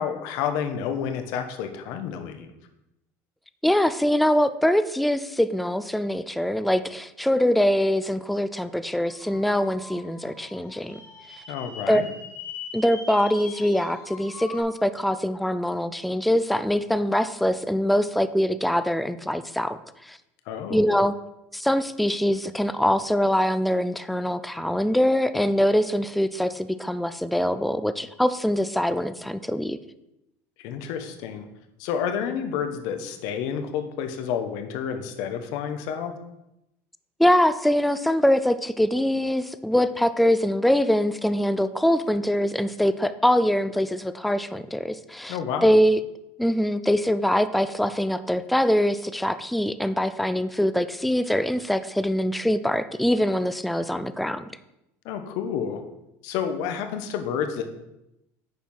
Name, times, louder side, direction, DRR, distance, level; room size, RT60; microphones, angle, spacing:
voice 1, 0.0-2.5 11.5-12.1 20.5-20.8 30.6-31.5 31.8-36.1 45.3-45.7 55.0-55.8 56.2-57.6, left 7 dB, 70° left, 7 dB, 1.1 m, -29 dB
voice 2, 3.6-11.0 11.9-12.0 12.7-19.8 20.1-20.2 20.7-21.1 21.5-29.8 37.2-45.4 45.6-46.0 46.4-54.4, equal, ahead, 13 dB, 0.3 m, -23 dB
sound 1, 9.0-14.6, left 5 dB, 45° left, 2.1 m, -42 dB
9.5 x 4.7 x 5.5 m, 0.87 s
cardioid pair, 135°, 7 cm